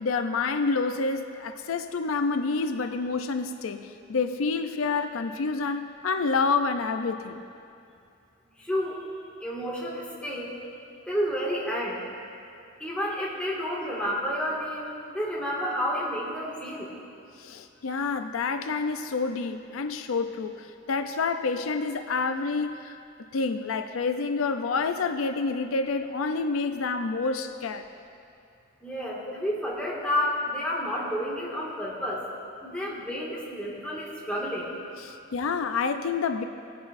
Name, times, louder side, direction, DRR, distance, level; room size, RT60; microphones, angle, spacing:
voice 1, 0.0-7.4 17.4-23.0 23.3-27.8 35.0-36.4, left 4 dB, 85° left, 8 dB, 0.5 m, -28 dB
voice 2, 8.6-9.0 9.4-10.5 11.1-12.0 12.8-16.9 28.8-32.3 32.6-34.7 35.1-35.2, equal, 5° left, -5 dB, 1.9 m, -30 dB
19.0 x 10.0 x 2.6 m, 2.5 s
head